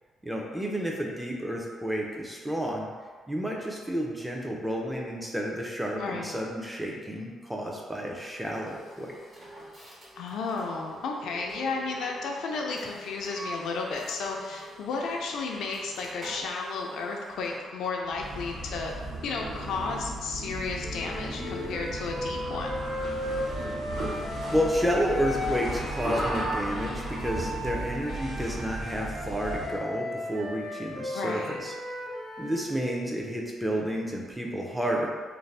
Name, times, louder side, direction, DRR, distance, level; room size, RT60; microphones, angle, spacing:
voice 1, 0.2-2.9 3.3-9.1 24.1-24.2 24.5-31.7 32.4-35.1, equal, 5° right, -1 dB, 0.5 m, -31 dB
voice 2, 5.9-6.4 10.2-18.9 19.2-22.8 31.1-31.6, left 4 dB, 75° left, 0 dB, 0.3 m, -33 dB
sound 1, 8.4-17.8, equal, 35° right, 1.0 m, -46 dB
sound 2, 18.1-29.8, right 1 dB, 75° right, 1.1 m, -35 dB
Wind instrument woodwind instrument, 20.8-26.6 27.1-32.7, left 1 dB, 60° right, 0.6 m, -36 dB
2.5 x 2.0 x 3.2 m, 1.5 s
cardioid pair, 90°, 0 cm